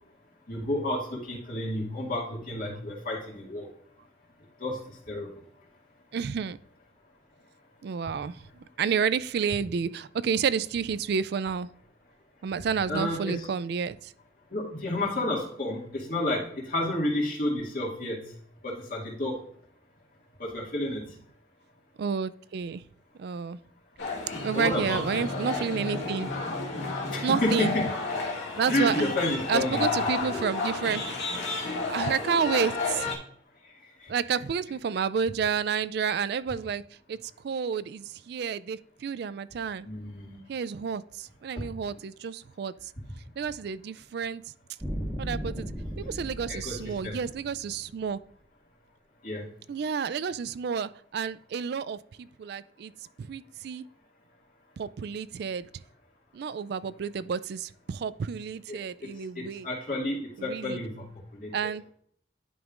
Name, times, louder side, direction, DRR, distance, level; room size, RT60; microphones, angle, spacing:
voice 1, 0.5-3.7 4.6-5.3 12.9-13.5 14.5-18.3 18.6-19.4 20.4-21.0 24.5-25.2 27.1-27.9 28.7-29.9 34.0-34.1 39.8-40.4 41.6-41.7 46.5-47.2 49.2-49.5 58.7-59.1 59.4-61.0 61.3-61.7, left 1 dB, 45° left, -3 dB, 2.1 m, -30 dB
voice 2, 6.1-6.6 7.8-11.7 12.4-14.1 22.0-22.8 23.2-23.6 24.4-26.3 27.2-27.8 28.6-29.1 29.5-31.0 31.7-33.1 34.1-36.8 37.1-37.2 37.4-39.9 40.5-42.7 43.4-44.4 45.2-48.2 49.7-52.9 53.2-53.8 54.8-55.7 56.3-59.7 60.4-60.8 61.5-61.8, right 6 dB, 55° right, 17 dB, 0.3 m, -30 dB
sound 1, 24.0-33.2, left 3 dB, 65° left, 2.2 m, -31 dB
sound 2, 44.8-48.0, equal, 5° right, 1.3 m, -36 dB
11.0 x 5.3 x 2.5 m, 0.62 s
head